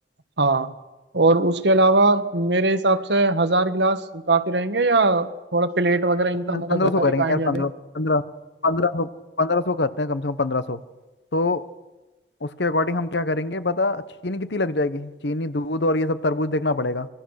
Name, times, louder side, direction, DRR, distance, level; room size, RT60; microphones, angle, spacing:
voice 1, 0.4-0.7 1.1-7.6, right 2 dB, 80° right, 10 dB, 1.5 m, -20 dB
voice 2, 6.4-8.2 8.6-9.1 9.4-10.8 11.3-11.6 12.4-17.1, left 2 dB, 80° left, 14 dB, 1.1 m, -24 dB
25.0 x 22.0 x 6.5 m, 1.1 s
head